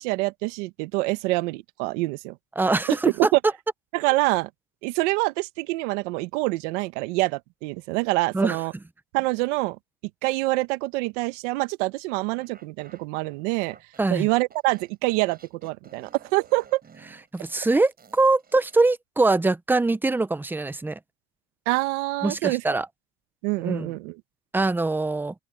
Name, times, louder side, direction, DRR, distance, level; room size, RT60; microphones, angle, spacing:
voice 1, 0.0-2.4 2.9-3.4 3.9-4.5 4.8-8.7 9.1-9.8 10.2-13.8 14.1-16.8 21.7-22.6 23.4-24.1, right 22 dB, 90° right, 1.3 m, -26 dB
voice 2, 2.6-3.3 8.3-8.6 14.0-14.3 17.3-21.0 22.2-22.9 23.6-23.9 24.5-25.3, right 3 dB, 5° right, 0.6 m, -23 dB
sound 1, 12.3-18.9, right 6 dB, 25° right, 7.6 m, -53 dB
cardioid pair, 135°, 35 cm